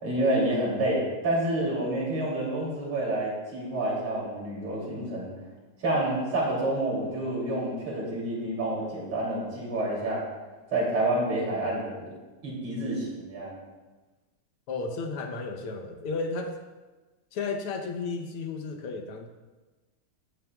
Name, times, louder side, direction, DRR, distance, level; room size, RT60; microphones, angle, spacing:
voice 1, 0.0-5.3 5.8-10.2 10.7-12.0 12.4-13.6, right 1 dB, 70° right, -5 dB, 3.8 m, -28 dB
voice 2, 14.7-16.6 17.3-19.3, left 4 dB, 80° left, 5 dB, 1.9 m, -33 dB
16.0 x 8.8 x 2.3 m, 1.2 s
omnidirectional pair, 2.4 m